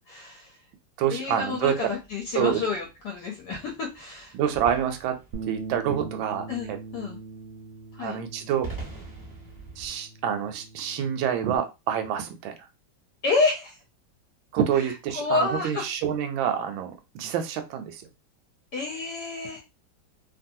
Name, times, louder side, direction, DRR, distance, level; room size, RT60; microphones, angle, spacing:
voice 1, 0.1-0.6 1.1-4.3 6.5-7.2 7.9-8.2 13.2-13.8 15.1-15.8 18.7-19.6, left 4 dB, 70° left, 0 dB, 1.1 m, -29 dB
voice 2, 1.0-1.9 2.3-2.6 4.3-5.1 5.4-6.8 8.0-8.7 9.8-12.5 14.5-18.0, right 9 dB, 80° right, 7 dB, 1.3 m, -27 dB
sound 1, 1.7-9.9, right 3 dB, 15° left, 1.1 m, -45 dB
Bass guitar, 5.3-11.6, right 4 dB, 65° right, 1.1 m, -41 dB
3.0 x 2.6 x 2.6 m, 0.26 s
omnidirectional pair, 2.1 m